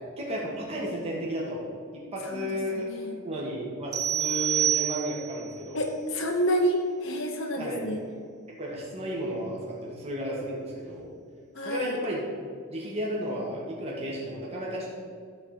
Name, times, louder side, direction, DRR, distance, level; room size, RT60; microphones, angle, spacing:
voice 1, 0.2-1.6 1.9-2.9 3.2-5.8 7.6-7.8 8.5-11.1 11.6-12.3 12.7-14.9, equal, 25° right, -4 dB, 1.8 m, -33 dB
voice 2, 2.7-3.2 5.7-8.0 11.5-12.0, equal, 60° left, 2 dB, 0.9 m, -28 dB
sound 1, 3.9-5.4, right 10 dB, 80° right, 1.1 m, -27 dB
12.5 x 4.4 x 7.7 m, 2.1 s
head